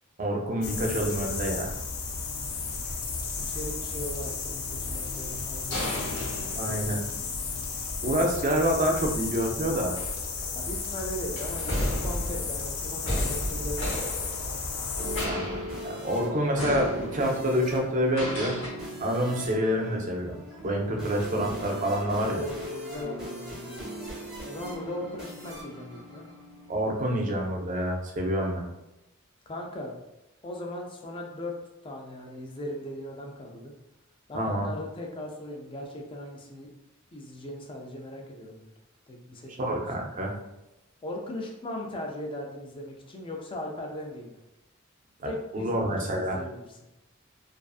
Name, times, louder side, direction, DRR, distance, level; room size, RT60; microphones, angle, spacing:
voice 1, 0.2-1.7 6.5-7.0 8.0-9.9 15.2-18.6 19.0-22.4 26.7-28.6 34.3-34.7 39.6-40.3 45.5-46.4, equal, 35° right, 1 dB, 0.4 m, -27 dB
sound 1, 0.6-15.3, left 4 dB, 90° left, 0.4 m, -33 dB
voice 2, 3.3-7.1 10.5-14.0 22.3-23.8 24.4-26.2 29.5-29.9 30.4-31.5 31.8-33.7 34.3-36.7 37.1-38.7 39.1-40.1 41.0-44.4 45.2-46.7, left 1 dB, 25° left, 1 dB, 0.4 m, -38 dB
sound 2, 4.9-7.4 8.9-9.1 9.8-10.8 11.4-14.9 15.1-16.2 16.5-17.5 18.1-18.7, equal, 65° left, 0.9 m, -34 dB
sound 3, 14.2-26.9, equal, 5° right, 0.7 m, -39 dB
2.5 x 2.4 x 2.3 m, 0.93 s
head